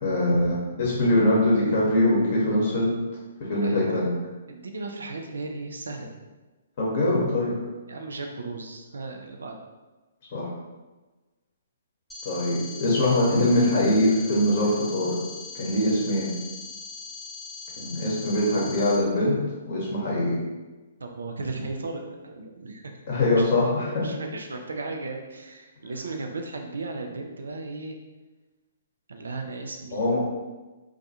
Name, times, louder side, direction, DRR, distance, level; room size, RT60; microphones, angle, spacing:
voice 1, 0.0-2.9 3.4-4.1 6.8-7.6 10.3-10.5 12.2-15.1 15.5-16.3 17.8-19.4 19.7-20.4 23.1-24.1 29.9-30.2, left 1 dB, 45° left, -5 dB, 0.8 m, -23 dB
voice 2, 3.6-4.0 4.5-6.1 7.9-9.6 21.0-23.0 23.4-23.5 24.0-28.0 29.1-30.0, right 3 dB, 75° right, 3 dB, 0.4 m, -35 dB
sound 1, 12.1-19.0, left 4 dB, 10° left, 0.5 m, -40 dB
2.3 x 2.2 x 2.7 m, 1.2 s
figure-of-eight pair, 125°, 0 cm